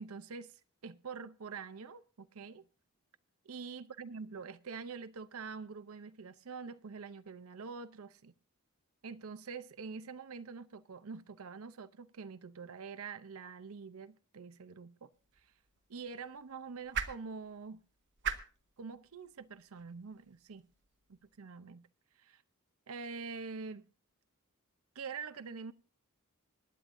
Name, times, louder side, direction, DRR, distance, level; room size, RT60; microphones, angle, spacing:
voice 1, 0.0-2.7 3.5-8.3 9.0-15.1 15.4-15.5 15.9-17.8 18.8-20.7 21.1-21.9 22.2-22.4 22.9-23.9 24.9-25.7, right 5 dB, 70° right, 0.6 m, -45 dB
sound 1, 15.1-21.4, right 7 dB, 55° right, 1.1 m, -44 dB
25.5 x 10.5 x 2.6 m
head